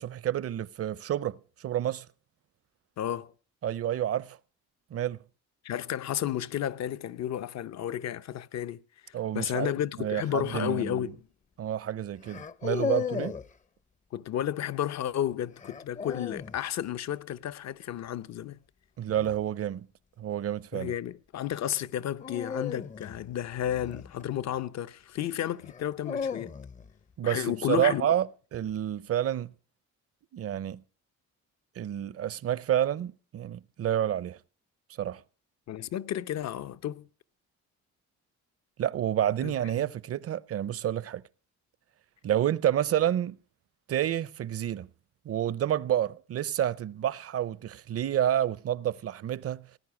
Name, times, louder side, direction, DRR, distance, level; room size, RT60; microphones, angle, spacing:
voice 1, 0.0-2.1 3.6-4.4 4.9-5.2 9.1-9.7 10.0-11.1 11.6-13.4 19.0-19.9 20.2-20.9 27.2-29.5 30.3-30.8 31.8-34.4 35.0-35.2 38.8-41.2 42.2-43.4 43.9-44.9 45.2-49.7, right 11 dB, 50° right, 0.6 m, -29 dB
voice 2, 3.0-3.3 5.6-8.8 9.3-11.2 14.1-18.6 20.7-26.5 27.2-28.1 35.7-37.1 39.4-39.5, left 11 dB, 60° left, 0.7 m, -32 dB
sound 1, 10.4-10.7 12.2-13.5 15.6-16.6 19.0-19.4 22.2-24.6 25.6-26.9, left 6 dB, 25° left, 0.6 m, -35 dB
18.5 x 10.0 x 5.9 m
cardioid pair, 90°, 30 cm